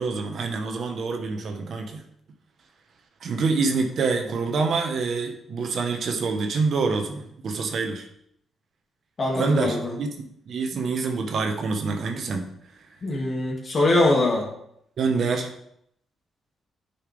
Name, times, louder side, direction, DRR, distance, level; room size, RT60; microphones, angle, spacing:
voice 1, 0.0-2.0 3.2-8.1 9.3-12.5 15.0-15.5, right 4 dB, 60° right, 4 dB, 1.2 m, -26 dB
voice 2, 9.2-10.0 13.0-14.5, left 2 dB, 45° left, -1 dB, 2.3 m, -22 dB
9.9 x 5.7 x 3.5 m, 0.74 s
cardioid pair, 95°, 0 cm